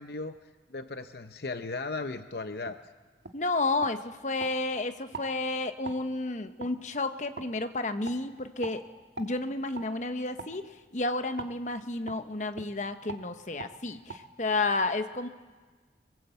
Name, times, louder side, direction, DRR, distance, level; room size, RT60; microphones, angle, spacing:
voice 1, 0.0-2.8, left 3 dB, 65° left, 9 dB, 0.7 m, -37 dB
sound 1, 2.6-2.8 3.2-3.4 3.8-4.5 5.1-5.3 5.8-6.0 6.6-6.7 7.4-7.5 8.0-8.2 8.6-8.8 9.2-9.3 9.7-9.9 10.4-10.5 11.4-11.5 12.1-12.2 12.5-12.7 13.1-13.2 13.6-13.7 14.1-14.2, right 3 dB, 85° right, 1.6 m, -41 dB
voice 2, 3.3-8.9 9.2-10.6 10.9-15.3, left 2 dB, 45° left, 9 dB, 1.0 m, -31 dB
22.5 x 21.0 x 8.0 m, 1.4 s
head